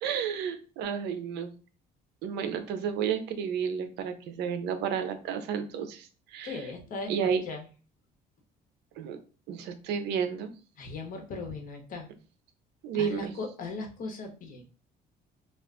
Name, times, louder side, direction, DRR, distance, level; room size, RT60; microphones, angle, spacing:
voice 1, 0.0-1.5 2.2-6.6 7.1-7.4 9.0-9.2 9.5-10.5 12.8-13.3, right 7 dB, 85° right, 9 dB, 0.5 m, -31 dB
voice 2, 6.4-7.6 10.8-12.1 12.9-14.6, left 3 dB, 55° left, 4 dB, 0.9 m, -38 dB
2.4 x 2.3 x 3.5 m, 0.36 s
cardioid pair, 110°, 17 cm